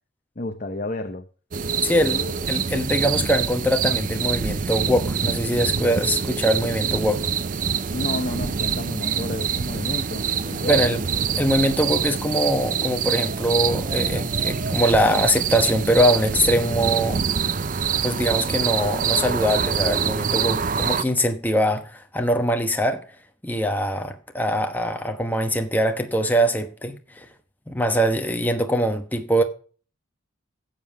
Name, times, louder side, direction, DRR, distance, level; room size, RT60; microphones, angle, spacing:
voice 1, 0.4-1.2 1.9-2.5 7.9-10.9, left 2 dB, 40° left, 0.7 m, -31 dB
sound 1, 1.5-21.0, right 7 dB, 40° right, 0.4 m, -25 dB
voice 2, 1.8-7.3 10.7-11.0 11.3-17.2 18.0-23.0 23.4-27.3 27.7-29.4, equal, 10° left, 1.0 m, -22 dB
10.5 x 7.5 x 7.0 m
head